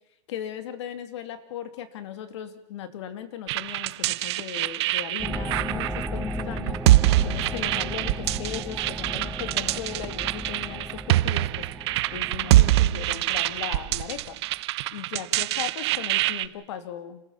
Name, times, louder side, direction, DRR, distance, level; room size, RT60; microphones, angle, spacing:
voice 1, 0.3-6.8 7.2-11.6 12.1-14.4 14.9-17.2, left 9 dB, 70° left, 10 dB, 2.6 m, -37 dB
sound 1, 3.5-16.5, right 16 dB, 65° right, 0.8 m, -24 dB
sound 2, 5.2-14.3, equal, ahead, 1.8 m, -35 dB
29.0 x 15.0 x 7.2 m, 0.93 s
supercardioid pair, 135°, 15 cm